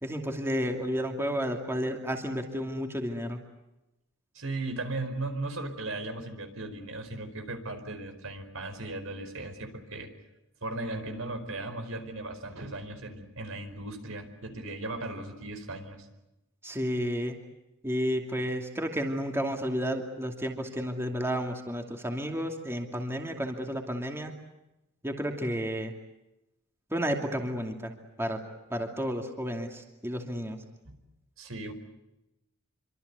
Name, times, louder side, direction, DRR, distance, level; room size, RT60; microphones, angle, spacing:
voice 1, 0.0-3.4 16.6-17.4 17.8-24.3 25.0-25.9 26.9-27.9 28.2-28.4 28.7-30.6, equal, 10° right, 3 dB, 2.6 m, -31 dB
voice 2, 4.3-10.1 10.6-16.1 30.9-31.0 31.4-31.7, right 2 dB, 70° right, 8 dB, 4.7 m, -37 dB
27.5 x 25.0 x 8.2 m, 0.94 s
head